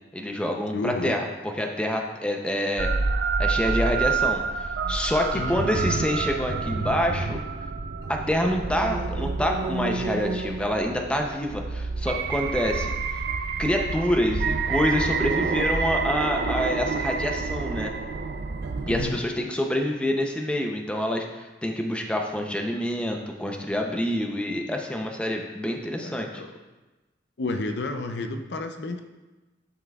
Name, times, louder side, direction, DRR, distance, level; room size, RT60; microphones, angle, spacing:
voice 1, 0.1-2.9 3.4-7.4 8.1-12.9 13.6-17.9 18.9-26.4, equal, 5° left, 2 dB, 0.6 m, -27 dB
voice 2, 0.7-1.2 5.3-5.6 18.9-19.2 26.0-26.5 27.4-29.0, left 2 dB, 65° left, 6 dB, 0.5 m, -31 dB
sound 1, 2.8-19.1, right 4 dB, 55° right, 0.4 m, -28 dB
10.5 x 5.8 x 2.4 m, 1.2 s
head